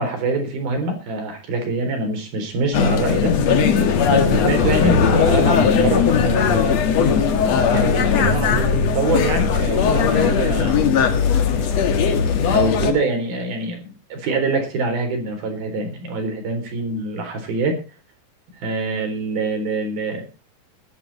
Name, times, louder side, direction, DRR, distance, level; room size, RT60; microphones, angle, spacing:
voice 1, 0.0-3.4 4.1-7.1 7.7-10.8 12.5-17.8 18.6-20.3, right 2 dB, 80° right, 5 dB, 5.9 m, -24 dB
sound 1, 2.7-12.9, left 6 dB, 55° left, 2.5 m, -18 dB
20.0 x 10.5 x 4.2 m, 0.32 s
omnidirectional pair, 4.2 m